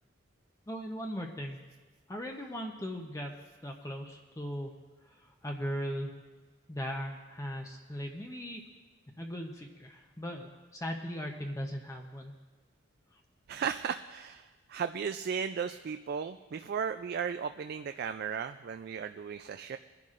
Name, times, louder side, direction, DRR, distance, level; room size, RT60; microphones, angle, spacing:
voice 1, 0.7-1.6 2.1-3.3 3.6-4.7 5.1-6.1 6.7-8.6 9.2-12.3 13.1-13.2, equal, 15° left, 1 dB, 0.7 m, -38 dB
voice 2, 13.5-19.8, right 7 dB, 50° right, 8 dB, 0.3 m, -35 dB
23.0 x 10.5 x 2.5 m, 1.3 s
head